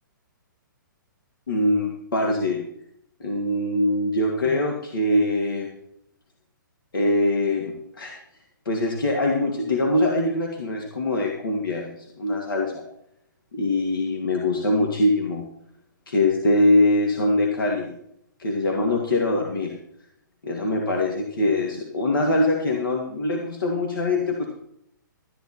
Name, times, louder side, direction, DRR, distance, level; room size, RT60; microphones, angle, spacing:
voice 1, 1.5-2.6 3.2-5.7 6.9-8.1 8.7-12.8 13.5-15.5 16.1-17.9 18.4-19.7 20.4-24.5, left 1 dB, 85° left, 0 dB, 2.5 m, -23 dB
14.0 x 10.5 x 4.4 m, 0.72 s
hypercardioid pair, 140°, 11 cm